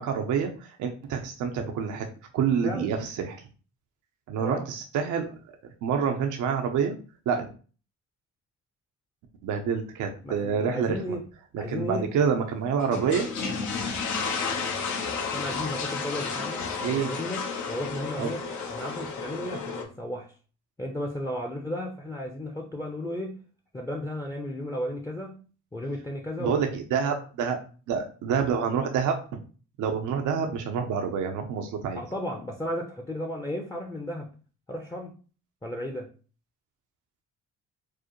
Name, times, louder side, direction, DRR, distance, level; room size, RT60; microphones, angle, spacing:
voice 1, 0.0-2.1 2.3-3.4 4.3-5.3 5.8-7.0 7.3-7.5 9.4-11.0 11.5-13.3 16.8-17.1 18.2-18.3 26.4-27.6 27.9-29.2 29.8-32.0, right 6 dB, 80° right, 0.7 m, -27 dB
voice 2, 10.2-11.2 11.6-12.1 15.3-18.4 18.7-20.3 20.8-23.4 23.7-25.4 25.7-26.6 31.9-34.3 34.7-35.1 35.6-36.1, left 1 dB, 10° left, 0.6 m, -34 dB
sound 1, 12.8-19.8, left 5 dB, 70° left, 0.9 m, -32 dB
4.7 x 2.1 x 3.0 m
cardioid pair, 90°, 30 cm